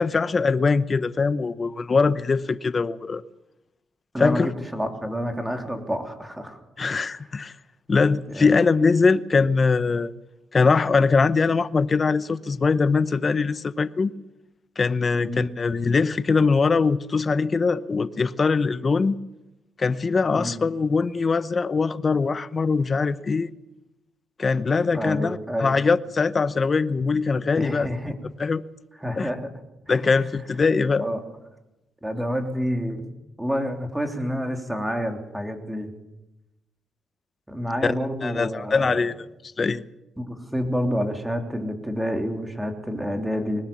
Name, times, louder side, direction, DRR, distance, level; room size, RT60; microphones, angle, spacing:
voice 1, 0.0-3.2 4.2-4.5 6.8-7.5 7.9-10.1 10.5-14.1 14.8-19.2 19.8-23.5 24.4-27.9 28.4-28.6 29.2-29.3 29.9-31.1 37.8-37.9 38.2-39.1 39.6-39.8, left 4 dB, 35° left, 0.8 m, -22 dB
voice 2, 4.1-6.6 6.9-7.4 8.3-8.6 15.1-15.5 20.3-20.6 24.9-25.7 27.5-28.2 29.0-29.5 29.9-30.2 31.0-31.2 32.0-33.1 33.4-35.9 37.5-39.1 40.2-43.6, equal, 5° right, 3.2 m, -29 dB
21.5 x 19.5 x 7.2 m
cardioid pair, 90°, 0 cm